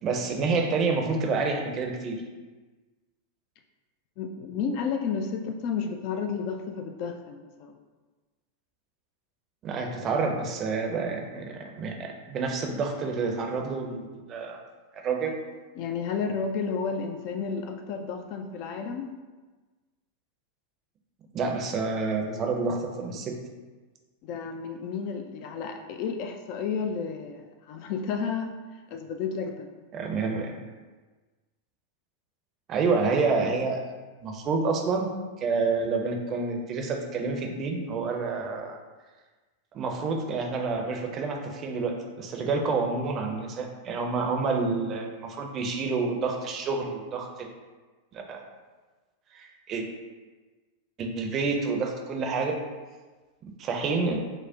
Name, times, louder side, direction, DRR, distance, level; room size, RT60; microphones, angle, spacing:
voice 1, 0.0-2.2 9.6-14.6 15.0-15.3 21.3-23.4 29.9-30.6 32.7-33.8 34.2-35.1 35.4-38.8 39.7-47.5 48.1-48.4 49.3-49.8 51.0-52.6 53.6-54.2, right 4 dB, 30° right, 3 dB, 0.5 m, -28 dB
voice 2, 4.2-7.8 15.8-19.2 24.2-28.5 28.9-29.7, left 6 dB, 45° left, 5 dB, 0.3 m, -32 dB
5.0 x 2.1 x 3.5 m, 1.3 s
figure-of-eight pair, 90°, 0 cm